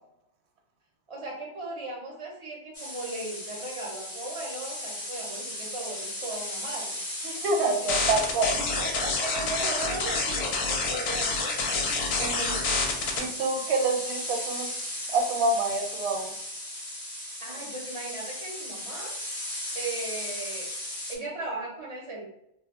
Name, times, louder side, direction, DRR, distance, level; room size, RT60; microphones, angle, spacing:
voice 1, 1.1-7.0 7.7-7.8 9.2-12.4 17.4-19.1 19.7-20.7 21.1-22.2, right 2 dB, 45° right, -2 dB, 0.4 m, -37 dB
sound 1, 2.7-21.2, left 1 dB, 40° left, 0.7 m, -37 dB
voice 2, 7.2-9.2 11.9-12.8 13.2-14.7 15.1-16.3, right 3 dB, 75° right, 3 dB, 0.9 m, -28 dB
sound 2, 7.9-13.2, left 4 dB, 70° left, 0.8 m, -28 dB
2.1 x 2.0 x 3.4 m, 0.77 s
omnidirectional pair, 1.1 m